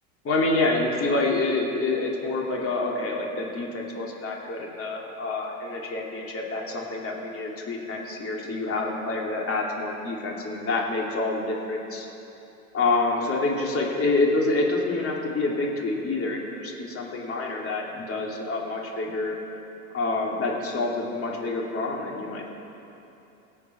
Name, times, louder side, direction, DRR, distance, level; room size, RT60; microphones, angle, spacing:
voice 1, 0.2-12.0 12.7-19.4 19.9-22.5, left 2 dB, 30° left, -2 dB, 3.0 m, -27 dB
24.5 x 8.5 x 4.5 m, 2.9 s
hypercardioid pair, 85°, 44 cm